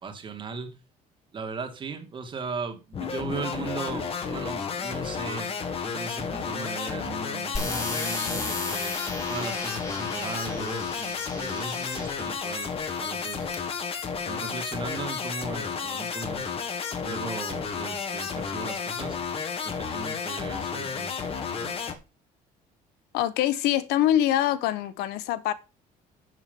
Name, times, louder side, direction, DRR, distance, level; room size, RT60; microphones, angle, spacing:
voice 1, 0.0-0.8 1.3-8.9 9.3-12.7 13.0-13.5 14.2-16.5 17.0-19.2 19.6-21.8, right 4 dB, 30° right, 2.2 m, -37 dB
sound 1, 2.9-21.9, left 6 dB, 35° left, 1.8 m, -32 dB
sound 2, 7.5-12.3 13.0-13.5, left 2 dB, 20° left, 3.1 m, -35 dB
voice 2, 23.1-25.5, left 12 dB, 90° left, 1.3 m, -24 dB
9.3 x 7.3 x 5.5 m
cardioid pair, 145°, 16 cm